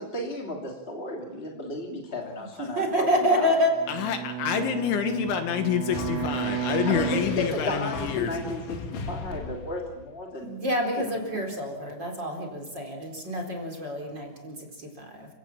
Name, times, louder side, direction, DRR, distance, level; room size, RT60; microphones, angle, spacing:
voice 1, 0.0-3.5 6.8-10.6 11.0-11.4, left 1 dB, 20° left, 0 dB, 1.8 m, -34 dB
voice 2, 2.6-3.7 10.4-14.6 14.8-15.3, equal, 25° right, 1 dB, 4.2 m, -27 dB
Bowed string instrument, 3.7-8.1, right 9 dB, 80° right, 3.9 m, -33 dB
voice 3, 3.9-8.3, left 8 dB, 75° left, 7 dB, 3.7 m, -27 dB
sound 1, 5.9-10.2, left 4 dB, 55° left, 2.8 m, -37 dB
30.0 x 17.5 x 7.4 m, 0.96 s
omnidirectional pair, 5.7 m